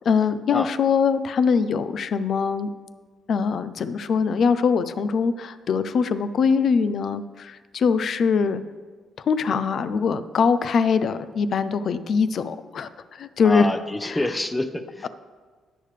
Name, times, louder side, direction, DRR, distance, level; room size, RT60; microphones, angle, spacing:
voice 1, 0.0-2.7 3.3-8.6 9.3-12.9 13.2-13.7 14.0-14.2, left 5 dB, 60° left, 13 dB, 0.6 m, -22 dB
voice 2, 13.4-15.1, left 1 dB, 15° left, 10 dB, 0.8 m, -27 dB
19.5 x 6.7 x 3.4 m, 1.5 s
cardioid pair, 90°, 0 cm